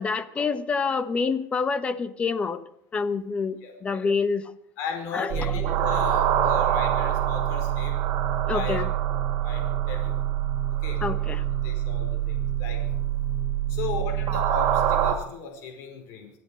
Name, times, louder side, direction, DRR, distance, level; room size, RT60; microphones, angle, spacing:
voice 1, 0.0-2.6 2.9-4.5 5.1-5.7 6.4-6.5 8.5-8.9 11.0-11.4, left 5 dB, 25° left, 12 dB, 1.2 m, -27 dB
voice 2, 4.8-8.0 8.5-8.9 9.4-10.2 10.8-11.0 11.6-12.8 13.7-16.3, left 5 dB, 75° left, 3 dB, 5.0 m, -36 dB
sound 1, 5.3-15.1, right 11 dB, 60° right, 2.9 m, -25 dB
25.5 x 8.5 x 6.4 m, 0.68 s
cardioid pair, 140°, 5 cm